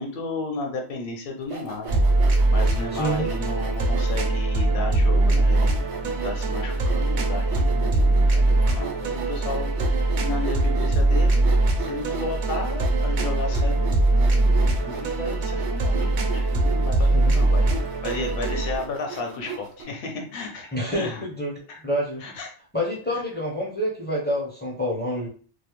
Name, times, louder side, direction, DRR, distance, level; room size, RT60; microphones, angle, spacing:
voice 1, 0.0-2.0 2.5-11.5 11.8-17.7 18.0-21.3 21.7-21.8 22.2-22.5 23.1-23.2, left 3 dB, 60° left, 2 dB, 0.8 m, -34 dB
Sawing, 1.4-4.3 4.9-5.0 5.5-19.8, right 6 dB, 90° right, 0.9 m, -39 dB
sound 1, 1.9-18.8, right 2 dB, 55° right, 0.5 m, -22 dB
voice 2, 2.9-3.3 17.1-17.3 20.7-21.5 21.8-22.2 22.7-25.3, equal, 10° left, -4 dB, 0.5 m, -27 dB
2.3 x 2.0 x 2.9 m, 0.42 s
omnidirectional pair, 1.1 m